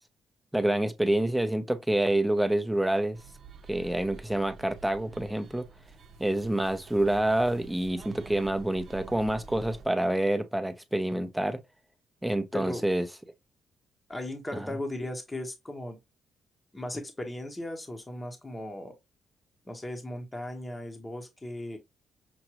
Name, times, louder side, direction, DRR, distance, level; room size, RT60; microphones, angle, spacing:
voice 1, 0.5-3.2 3.7-5.6 6.2-11.6 12.2-13.1 14.5-14.7, right 1 dB, 5° right, 0.7 m, -27 dB
sound 1, 3.1-9.9, right 5 dB, 60° right, 0.8 m, -48 dB
voice 2, 12.5-12.8 14.1-16.0 16.7-18.9 19.7-21.8, left 1 dB, 15° left, 1.0 m, -37 dB
6.0 x 2.5 x 2.9 m
cardioid pair, 90°, 0 cm